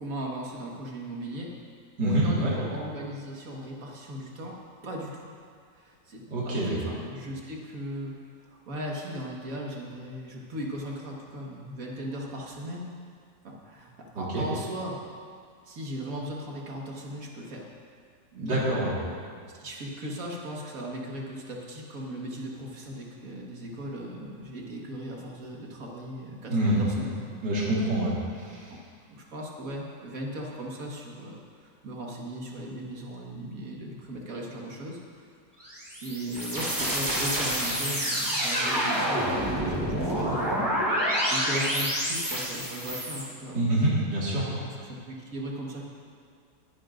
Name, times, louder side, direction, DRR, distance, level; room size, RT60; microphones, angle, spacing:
voice 1, 0.0-1.5 2.0-4.6 4.8-5.3 5.8-8.1 8.4-12.9 13.4-15.0 15.6-17.7 18.3-18.6 19.6-27.4 29.1-35.3 36.0-40.6 41.2-43.9 44.6-45.8, equal, 55° right, -2 dB, 2.0 m, -37 dB
voice 2, 2.0-2.5 6.3-6.8 14.2-14.5 18.4-18.9 26.5-26.8 27.4-28.7 43.5-44.5, right 1 dB, 75° right, -7 dB, 2.6 m, -26 dB
sound 1, 35.6-43.2, equal, 15° right, 3.1 m, -28 dB
21.0 x 10.0 x 2.6 m, 2.2 s
omnidirectional pair, 1.8 m